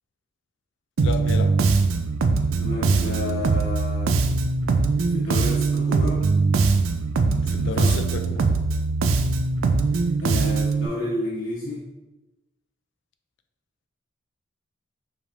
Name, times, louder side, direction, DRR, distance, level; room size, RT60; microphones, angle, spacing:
voice 1, 1.0-1.5 7.3-8.5, left 4 dB, 60° left, 8 dB, 0.4 m, -31 dB
Bass guitar, 1.0-10.9, right 4 dB, 80° right, 0.4 m, -22 dB
voice 2, 2.6-4.1 5.1-6.3 7.6-7.9 10.2-11.9, left 1 dB, 85° left, -10 dB, 1.1 m, -30 dB
5.0 x 3.4 x 2.6 m, 1.1 s
head